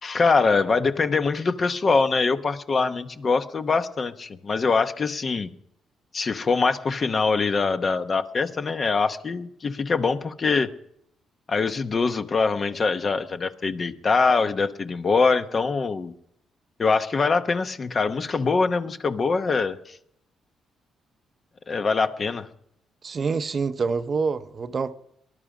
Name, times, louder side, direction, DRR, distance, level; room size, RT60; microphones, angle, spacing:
voice 1, 0.0-5.5 6.1-10.7 11.5-16.1 16.8-20.0 21.7-22.5, left 4 dB, 40° left, 1.0 m, -23 dB
voice 2, 23.0-24.9, right 5 dB, 40° right, 0.7 m, -26 dB
19.5 x 11.5 x 5.0 m
cardioid pair, 90°, 0 cm